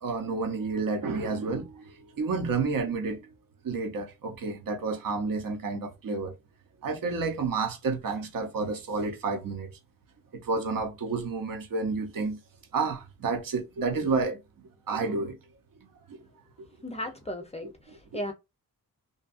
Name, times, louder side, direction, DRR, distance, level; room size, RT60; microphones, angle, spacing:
voice 1, 0.0-3.3 3.6-6.3 6.8-9.8 10.3-12.4 12.7-14.4 14.9-15.4 16.1-16.2 16.6-16.7 17.6-18.2, right 4 dB, 65° right, 0.8 m, -30 dB
voice 2, 16.8-18.3, left 1 dB, 20° left, 0.4 m, -36 dB
2.6 x 2.3 x 2.3 m
wide cardioid pair, 135°, 36 cm